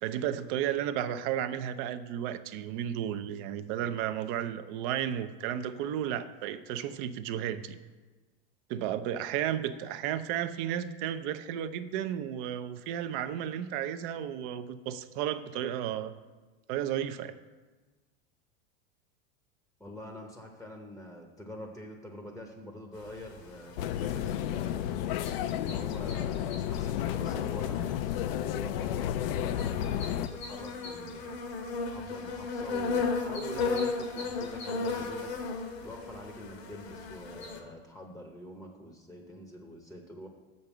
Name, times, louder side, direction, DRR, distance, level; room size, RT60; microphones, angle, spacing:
voice 1, 0.0-7.8 8.7-16.1 16.7-17.3, right 10 dB, 55° right, 11 dB, 0.6 m, -33 dB
voice 2, 19.8-24.9 25.5-31.3 31.8-35.3 35.8-40.3, equal, ahead, 2 dB, 0.8 m, -45 dB
sound 1, 23.0-37.6, left 4 dB, 85° left, 1.4 m, -36 dB
sound 2, 23.8-30.3, left 11 dB, 65° left, 0.5 m, -32 dB
6.6 x 5.4 x 7.2 m, 1.3 s
supercardioid pair, 130°, 31 cm